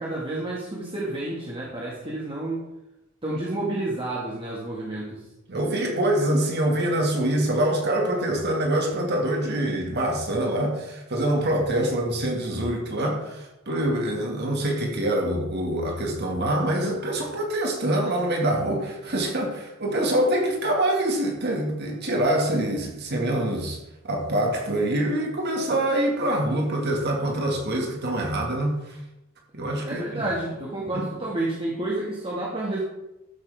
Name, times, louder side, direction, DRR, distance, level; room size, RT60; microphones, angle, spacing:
voice 1, 0.0-2.6 3.2-5.2 29.9-32.8, right 2 dB, 25° right, -5 dB, 1.8 m, -30 dB
voice 2, 5.5-23.8 24.0-29.0 29.5-30.2 30.9-31.1, right 1 dB, 55° right, 1 dB, 1.9 m, -25 dB
13.0 x 8.1 x 3.5 m, 0.93 s
head